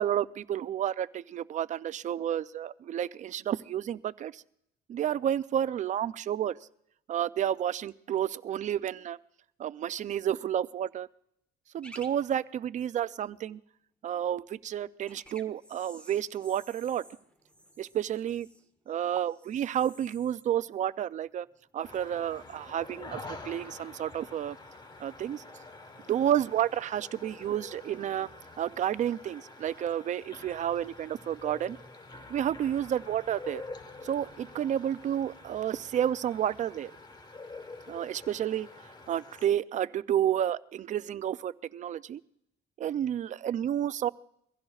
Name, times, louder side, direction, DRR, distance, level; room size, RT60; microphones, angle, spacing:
voice 1, 0.0-4.4 4.9-6.6 7.1-9.2 9.6-11.1 11.7-13.6 14.0-17.0 17.8-18.5 18.9-21.5 21.7-24.6 25.0-25.4 26.1-28.3 28.6-31.8 32.3-33.6 34.0-36.9 37.9-38.7 39.1-42.2 42.8-44.1, right 10 dB, 45° right, 16 dB, 0.5 m, -30 dB
sound 1, 11.8-12.1 12.4-12.5 15.0-21.8 22.1-22.6 23.3-23.5, equal, 5° left, 1.5 m, -54 dB
sound 2, 21.8-39.5, left 3 dB, 25° left, 1.2 m, -47 dB
23.5 x 15.5 x 2.4 m, 0.74 s
cardioid pair, 110°, 17 cm